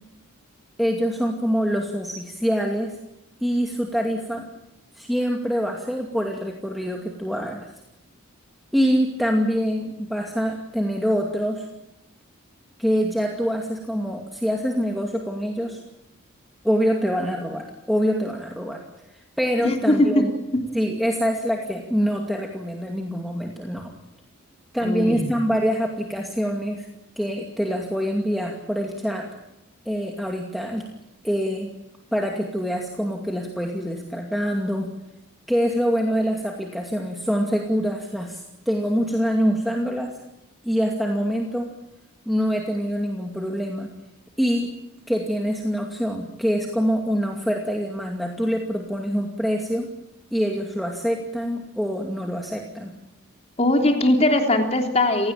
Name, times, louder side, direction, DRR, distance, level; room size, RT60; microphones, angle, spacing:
voice 1, 0.8-2.9 3.4-4.4 4.9-7.7 8.7-11.7 12.8-15.8 16.6-18.8 19.4-20.3 20.7-23.9 24.7-26.9 27.2-29.3 29.9-30.9 31.2-31.7 32.1-34.9 35.5-38.4 38.7-40.1 40.6-41.7 42.3-43.9 44.4-44.7 45.1-49.9 50.3-52.9, equal, ahead, 0 dB, 2.4 m, -25 dB
voice 2, 19.6-20.2 24.8-25.3 53.6-55.3, left 1 dB, 30° left, 3 dB, 3.5 m, -20 dB
29.0 x 17.0 x 8.9 m, 0.89 s
head